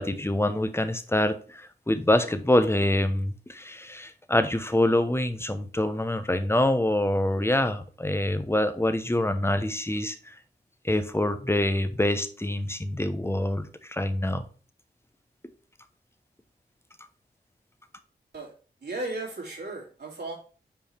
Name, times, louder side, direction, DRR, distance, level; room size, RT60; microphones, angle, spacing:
voice 1, 0.0-10.4 10.8-14.4, left 1 dB, 15° left, 10 dB, 1.0 m, -25 dB
voice 2, 18.8-20.3, right 2 dB, 70° right, -2 dB, 2.8 m, -35 dB
5.6 x 4.8 x 4.5 m, 0.38 s
cardioid pair, 40°, 18 cm